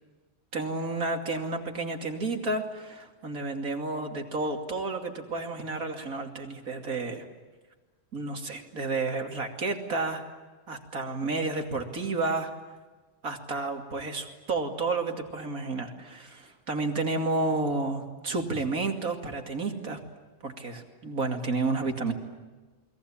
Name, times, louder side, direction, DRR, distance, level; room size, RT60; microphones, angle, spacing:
voice 1, 0.5-7.3 8.1-10.2 10.7-12.5 13.2-20.0 20.4-22.1, right 3 dB, 85° right, 4 dB, 3.1 m, -31 dB
29.5 x 21.5 x 8.8 m, 1.3 s
omnidirectional pair, 1.5 m